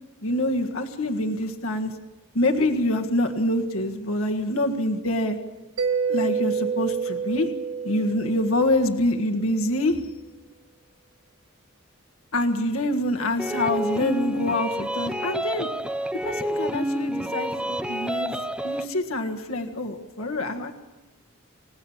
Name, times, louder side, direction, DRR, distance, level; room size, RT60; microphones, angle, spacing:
voice 1, 0.2-1.9 2.3-5.4 6.1-7.5 7.8-10.0 12.3-15.7 16.2-18.4 18.6-20.8, left 1 dB, 75° left, 4 dB, 1.7 m, -25 dB
Mallet percussion, 5.8-9.2, right 6 dB, 85° right, 2.3 m, -28 dB
sound 1, 13.4-18.9, equal, 5° right, 0.8 m, -28 dB
30.0 x 17.0 x 7.3 m, 1.2 s
head